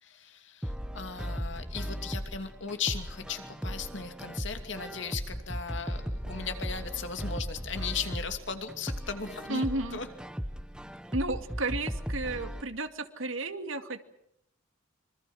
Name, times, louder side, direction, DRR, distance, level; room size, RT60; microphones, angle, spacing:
voice 1, 0.0-9.6 9.9-10.1, left 6 dB, 65° left, 6 dB, 2.8 m, -37 dB
sound 1, 0.6-12.6, equal, 5° right, 1.1 m, -37 dB
voice 2, 9.5-10.0 11.1-14.0, right 2 dB, 75° right, 8 dB, 2.2 m, -33 dB
26.0 x 25.0 x 6.3 m, 0.78 s
head